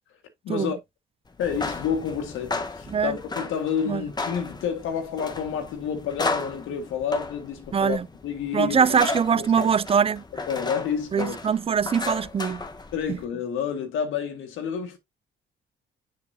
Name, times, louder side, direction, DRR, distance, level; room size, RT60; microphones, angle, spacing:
voice 1, 0.4-0.8 1.4-8.0 8.2-9.0 9.3-9.7 10.5-11.4 12.9-15.0, left 7 dB, 90° left, 1.7 m, -29 dB
sound 1, 1.3-13.2, left 3 dB, 20° left, 1.2 m, -34 dB
voice 2, 7.7-8.0 8.5-10.2 11.1-12.6, right 7 dB, 30° right, 0.4 m, -22 dB
6.8 x 6.5 x 2.7 m
cardioid pair, 90°, 20 cm